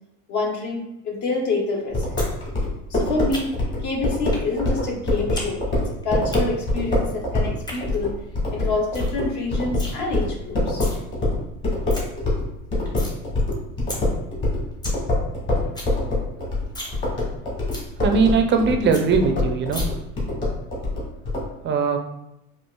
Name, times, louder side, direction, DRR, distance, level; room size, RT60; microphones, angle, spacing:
voice 1, 0.3-2.0 2.9-8.1 8.5-10.8, left 3 dB, 55° left, 0 dB, 1.0 m, -27 dB
sound 1, 1.9-12.5 12.7-21.5, left 2 dB, 35° left, 1.4 m, -24 dB
sound 2, 2.2-2.3 2.6-3.7 4.3-4.5 4.8-5.5 5.8-6.4 7.4-7.8 8.3-8.4 8.6-8.7 8.9-9.2 9.4-9.9 10.6-11.0 11.4-11.5 11.7-12.0 12.4-13.2 13.5-13.6 13.9-14.0 14.4-14.5 14.7-15.0 15.3-15.4 15.6-15.9 16.3-16.4 16.7-17.0 17.3-17.4 17.7-17.9 18.3-18.4 18.6-18.7 18.9-19.0 19.7-19.8, left 1 dB, 10° left, 0.7 m, -34 dB
voice 2, 18.0-19.9 21.6-22.0, right 5 dB, 30° right, 5 dB, 0.4 m, -20 dB
4.4 x 2.4 x 2.2 m, 0.84 s
supercardioid pair, 105°, 36 cm